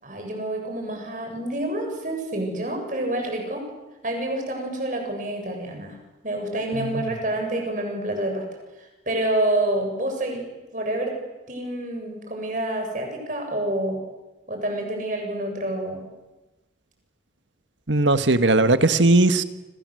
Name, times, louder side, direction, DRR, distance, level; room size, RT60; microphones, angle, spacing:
voice 1, 0.0-3.6 4.0-6.0 6.2-8.4 8.8-10.4 10.7-11.2 11.5-14.0 14.5-16.0, right 1 dB, 45° right, 7.6 m, -28 dB
voice 2, 6.7-7.1 17.9-19.4, right 2 dB, 85° right, 1.6 m, -19 dB
28.5 x 26.0 x 7.9 m
head